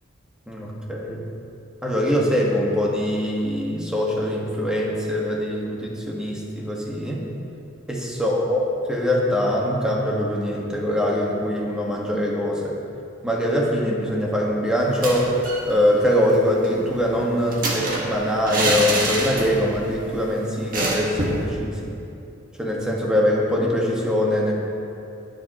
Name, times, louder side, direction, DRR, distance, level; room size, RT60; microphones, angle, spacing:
voice 1, 0.5-1.2 1.8-7.2 7.9-8.6 8.9-12.7 13.2-15.3 15.6-21.9 22.6-24.5, left 1 dB, 5° right, -3 dB, 1.6 m, -23 dB
sound 1, 14.9-15.7 16.0-16.1 16.3-19.8 20.1-20.2 20.7-21.5, right 2 dB, 45° right, 1.8 m, -26 dB
21.5 x 7.9 x 3.1 m, 2.7 s
head